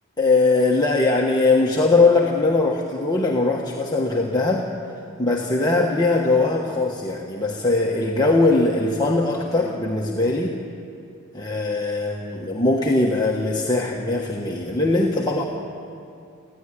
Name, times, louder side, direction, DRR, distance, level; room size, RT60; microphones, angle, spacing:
voice 1, 0.2-4.7 5.2-10.6 11.3-15.4, left 3 dB, 20° left, -2 dB, 1.3 m, -20 dB
22.0 x 15.0 x 9.8 m, 2.6 s
head